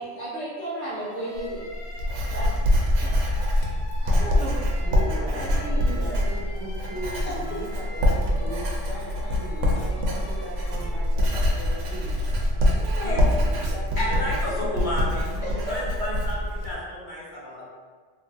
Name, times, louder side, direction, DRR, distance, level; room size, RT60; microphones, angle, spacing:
voice 1, 0.0-2.0 2.3-2.6 3.0-3.1 4.0-4.7 5.0-6.3 7.2-7.6 12.7-13.5 15.4-16.1, right 1 dB, 70° left, -9 dB, 1.4 m, -34 dB
sound 1, 0.9-11.0, left 2 dB, 85° left, 1.0 m, -45 dB
Writing, 1.4-16.7, left 1 dB, 90° right, 0.9 m, -24 dB
voice 2, 4.8-12.2 13.3-14.8, right 1 dB, 65° right, -4 dB, 0.9 m, -39 dB
voice 3, 14.0-17.7, left 1 dB, 50° left, -7 dB, 0.7 m, -32 dB
3.0 x 2.4 x 2.6 m, 1.5 s
omnidirectional pair, 1.2 m